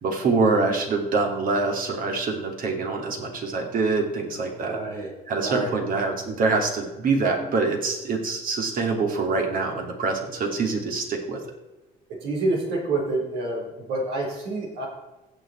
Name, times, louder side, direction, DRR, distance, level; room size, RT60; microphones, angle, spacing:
voice 1, 0.0-11.4, right 3 dB, 55° right, 3 dB, 2.7 m, -25 dB
voice 2, 4.6-5.1 5.4-5.7 12.2-14.9, right 2 dB, 85° right, -1 dB, 4.5 m, -28 dB
16.0 x 7.1 x 4.5 m, 1.1 s
cardioid pair, 110°, 17 cm